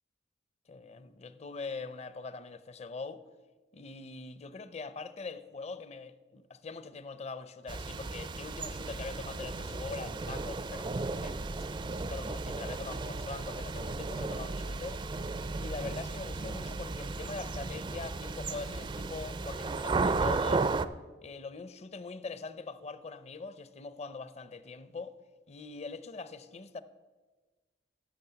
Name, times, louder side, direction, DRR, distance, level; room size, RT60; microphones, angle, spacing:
voice 1, 0.7-3.2 3.7-11.6 12.0-15.0 15.6-20.7 21.2-25.2 25.5-26.8, left 4 dB, 40° left, 0.6 m, -42 dB
sound 1, 7.7-20.8, right 3 dB, 25° right, 0.4 m, -34 dB
11.5 x 6.9 x 6.8 m
head